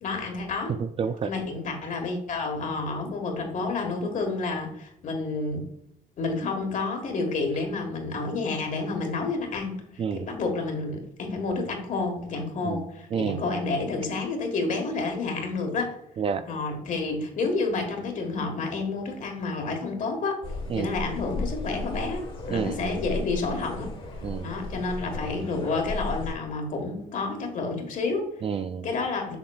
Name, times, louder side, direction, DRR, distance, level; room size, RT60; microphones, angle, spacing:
voice 1, 0.0-0.8 1.2-5.7 6.2-15.9 16.5-20.4 20.7-23.9 24.4-28.3 28.8-29.4, left 3 dB, 50° left, 3 dB, 1.5 m, -29 dB
voice 2, 0.7-1.3 10.0-10.3 12.6-12.8 13.1-13.4 16.2-16.5 20.7-20.9 22.5-23.0 24.2-24.5 28.4-28.9, right 6 dB, 35° right, 11 dB, 0.3 m, -29 dB
sound 1, 20.4-26.3, left 2 dB, 35° left, 1.5 m, -35 dB
7.1 x 5.6 x 2.4 m, 0.78 s
cardioid pair, 110°, 17 cm